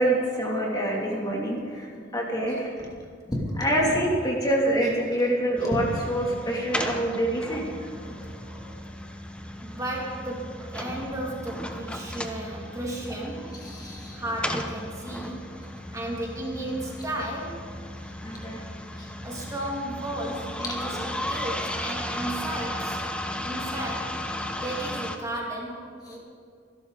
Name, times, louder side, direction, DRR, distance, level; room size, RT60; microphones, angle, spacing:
voice 1, 0.0-1.9 2.1-2.7 3.3-7.7 13.6-14.2 18.2-18.6, right 1 dB, 20° left, -2 dB, 2.8 m, -26 dB
voice 2, 2.0-2.4 7.6-8.9 9.6-13.8 14.1-17.9 19.2-23.1 23.4-24.2 24.5-26.2, right 1 dB, 20° right, -2 dB, 2.5 m, -35 dB
sound 1, 5.6-25.2, left 1 dB, 5° left, 1.0 m, -35 dB
27.0 x 12.0 x 4.0 m, 2.2 s
head